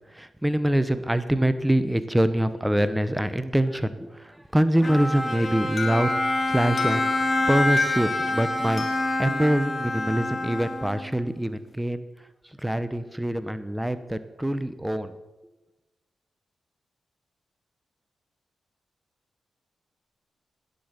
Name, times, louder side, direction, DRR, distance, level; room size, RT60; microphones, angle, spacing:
voice 1, 0.1-6.1 6.5-7.1 7.5-8.9 9.2-12.1 12.6-15.2, right 1 dB, 10° right, 12 dB, 1.0 m, -24 dB
Bowed string instrument, 4.8-11.2, left 1 dB, 25° left, 2.5 m, -27 dB
Alarm, 5.8-10.6, left 5 dB, 65° left, 2.4 m, -34 dB
10.5 x 8.1 x 7.5 m, 1.1 s
cardioid pair, 55°, 0 cm